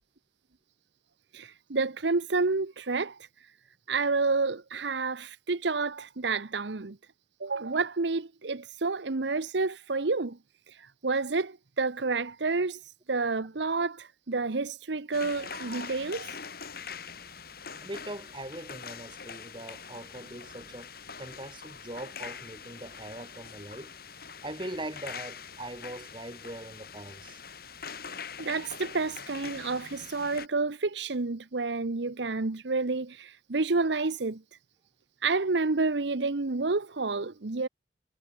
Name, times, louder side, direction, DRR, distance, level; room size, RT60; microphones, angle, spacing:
voice 1, 1.3-3.2 3.9-7.0 7.4-10.4 10.7-12.8 13.1-16.3 28.4-34.4 35.2-37.7, right 3 dB, 70° right, 0.9 m, -29 dB
sound 1, 15.1-30.5, left 6 dB, 55° left, 7.0 m, -43 dB
voice 2, 17.8-20.9 21.2-23.9 24.4-27.4, right 1 dB, 25° right, 6.6 m, -41 dB
head